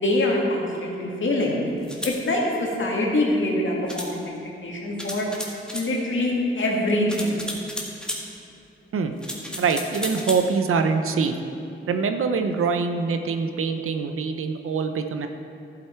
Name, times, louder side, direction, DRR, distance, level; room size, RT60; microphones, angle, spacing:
voice 1, 0.0-1.6 2.0-4.2 4.6-5.3 5.7-7.4, left 1 dB, 65° left, -2 dB, 2.1 m, -24 dB
sound 1, 1.8-2.2 3.9-4.1 5.0-5.9 7.1-8.2 9.2-10.4, equal, 5° left, 1.7 m, -33 dB
voice 2, 9.6-11.3 11.9-15.3, right 5 dB, 85° right, 7 dB, 0.7 m, -24 dB
12.5 x 7.7 x 4.5 m, 2.7 s
cardioid pair, 65°, 21 cm